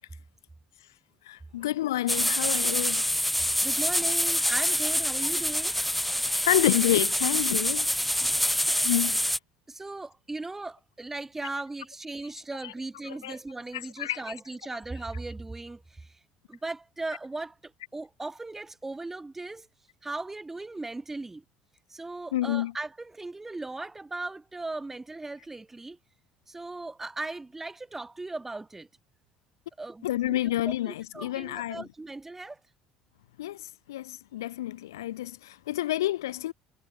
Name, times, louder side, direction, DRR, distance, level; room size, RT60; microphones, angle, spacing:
voice 1, 1.3-3.1 6.5-7.9 8.8-9.2 12.6-12.7 13.1-13.3 14.0-14.2 22.3-22.7 30.0-31.8 33.4-36.5, left 14 dB, 75° left, 2.6 m, -29 dB
sound 1, 2.1-9.4, equal, 5° left, 2.9 m, -26 dB
voice 2, 3.6-5.7 9.7-16.2 16.5-19.7 20.0-21.4 21.9-26.0 26.5-28.9 29.8-32.6, right 2 dB, 15° right, 5.7 m, -38 dB
hypercardioid pair, 60°, 2 cm